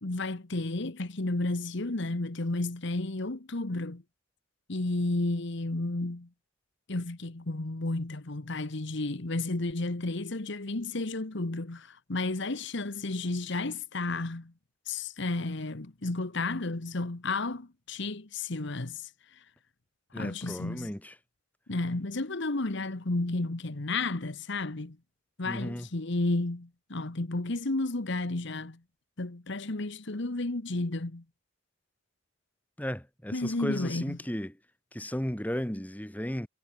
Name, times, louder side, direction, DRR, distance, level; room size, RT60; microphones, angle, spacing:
voice 1, 0.0-4.0 4.7-6.3 6.9-14.5 14.9-19.4 20.1-20.9 21.7-25.0 25.4-28.8 29.2-31.2 33.3-34.2, left 2 dB, 60° left, 1.3 m, -32 dB
voice 2, 20.1-21.1 25.4-25.9 32.8-34.6 34.9-36.5, equal, 10° left, 2.0 m, -35 dB
head